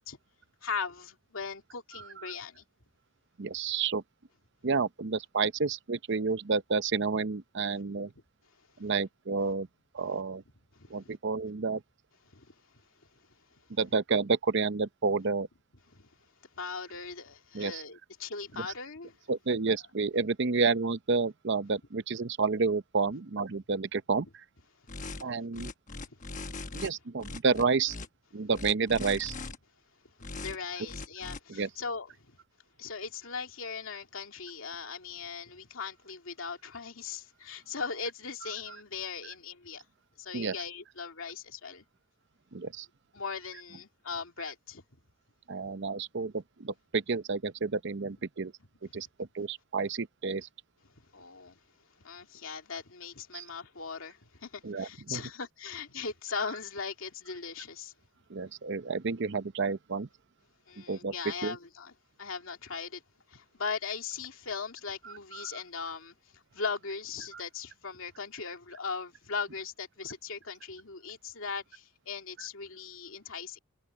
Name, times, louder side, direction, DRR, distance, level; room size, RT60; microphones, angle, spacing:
voice 1, 0.6-2.6 7.8-7.9 10.8-10.9 12.3-12.5 15.9-16.1 16.6-19.1 26.1-26.2 26.6-26.7 30.4-32.4 32.8-39.8 40.2-41.8 43.1-44.8 48.9-49.0 51.1-51.6 52.0-57.9 60.7-61.9 62.2-63.0 63.3-73.6, left 5 dB, 70° left, 2.6 m, -39 dB
voice 2, 1.9-2.3 3.4-4.0 4.6-8.1 8.8-9.7 9.9-10.4 10.9-11.8 13.8-15.5 17.5-17.8 18.6-18.7 19.3-24.3 25.2-25.7 26.7-27.9 28.3-29.3 31.5-31.7 38.7-38.8 40.3-40.5 42.5-42.9 45.5-48.5 48.9-50.5 53.3-53.5 54.6-55.2 58.3-60.1 60.9-61.1 61.4-61.6 65.0-65.6 67.3-67.4, right 4 dB, 55° right, 0.7 m, -30 dB
sound 1, 24.9-25.2 25.5-26.9 27.2-28.1 28.5-29.6 30.2-30.6 30.9-31.4, left 3 dB, 35° left, 1.1 m, -40 dB
head